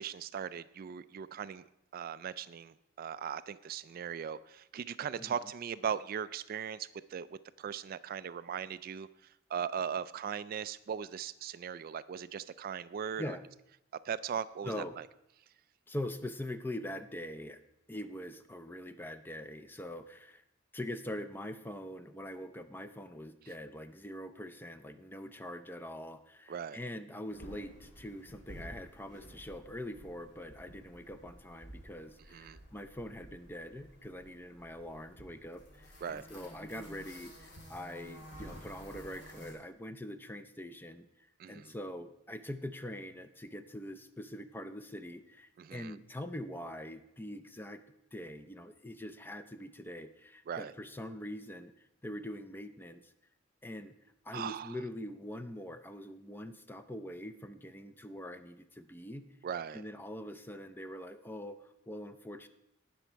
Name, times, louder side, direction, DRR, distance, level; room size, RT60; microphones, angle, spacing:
voice 1, 0.0-1.6 1.9-9.1 9.5-13.4 14.0-15.0 26.5-26.8 32.3-32.6 36.0-36.2 41.4-41.7 45.6-46.0 50.5-50.7 54.3-54.7 59.4-59.8, right 7 dB, 50° right, 15 dB, 0.3 m, -39 dB
voice 2, 14.6-15.0 15.9-17.6 17.9-20.4 20.7-41.1 41.5-47.8 48.1-51.7 52.0-53.1 53.6-53.9 54.2-59.3 59.7-62.5, left 1 dB, 10° left, 11 dB, 0.5 m, -43 dB
sound 1, 27.3-39.5, equal, 60° left, 3.3 m, -52 dB
18.5 x 6.1 x 4.5 m, 0.85 s
head